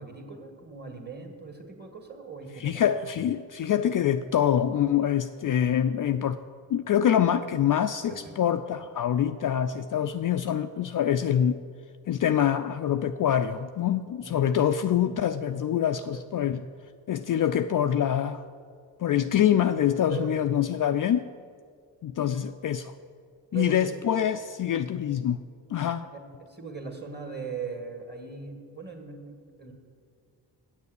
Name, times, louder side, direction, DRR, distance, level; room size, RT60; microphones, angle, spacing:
voice 1, 0.0-2.8 8.1-8.4 14.2-14.5 16.1-16.5 20.1-20.4 23.5-23.9 26.1-29.7, right 5 dB, 20° right, 3 dB, 2.2 m, -40 dB
voice 2, 2.6-6.4 6.7-11.6 12.1-16.6 17.1-18.4 19.0-21.2 22.0-22.9 23.5-25.4 25.7-26.1, left 10 dB, 45° left, 10 dB, 0.5 m, -25 dB
8.4 x 7.1 x 8.1 m, 2.1 s
supercardioid pair, 40°, 46 cm